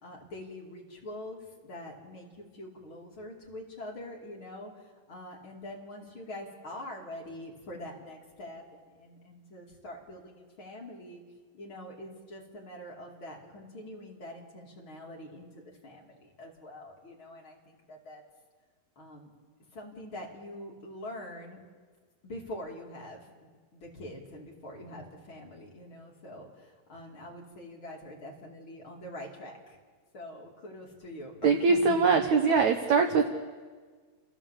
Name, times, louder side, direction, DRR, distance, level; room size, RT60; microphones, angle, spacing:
voice 1, 0.0-4.7 5.1-11.2 11.5-18.2 19.0-19.3 19.7-21.6 22.2-29.8 30.1-32.8, left 1 dB, 35° left, -2 dB, 3.1 m, -44 dB
voice 2, 31.4-33.3, right 5 dB, 70° right, 5 dB, 1.8 m, -22 dB
29.5 x 15.0 x 7.4 m, 1.5 s
omnidirectional pair, 4.6 m